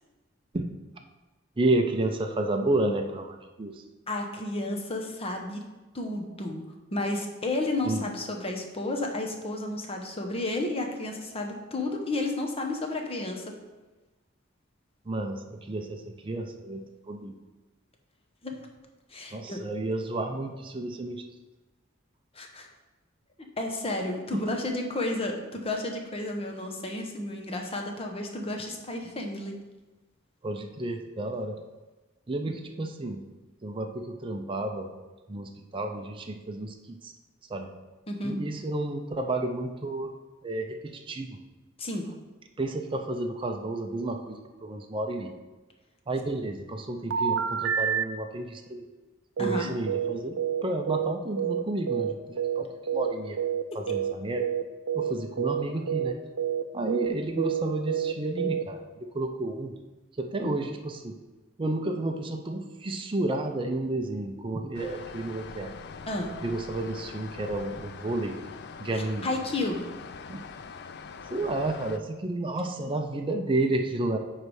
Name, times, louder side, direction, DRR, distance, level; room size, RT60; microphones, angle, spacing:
voice 1, 1.6-3.8 7.8-8.1 15.1-17.3 19.3-21.2 24.3-24.6 30.4-31.6 32.3-33.2 33.6-34.9 35.3-37.1 37.5-37.7 38.2-40.1 40.4-41.4 42.6-45.4 46.1-48.9 49.4-53.4 53.7-54.5 54.9-56.2 56.7-58.8 59.1-59.8 60.2-61.2 61.6-65.8 66.4-68.4 68.8-69.3 70.3-70.5 71.3-74.2, right 2 dB, 25° right, 3 dB, 0.5 m, -31 dB
voice 2, 4.1-5.6 5.9-13.4 18.4-18.6 19.1-19.6 22.3-22.7 23.6-29.6 38.1-38.4 41.8-42.1 49.4-49.7 60.4-60.5 66.1-66.4 69.2-69.8, left 2 dB, 30° left, 3 dB, 0.9 m, -32 dB
sound 1, 47.1-48.1 49.4-53.1 53.4-54.1 54.4-54.6 54.9-55.1 55.4-58.6, right 9 dB, 80° right, 0.5 m, -28 dB
sound 2, 64.7-72.0, left 5 dB, 60° left, 0.4 m, -43 dB
9.3 x 3.3 x 4.8 m, 1.2 s
head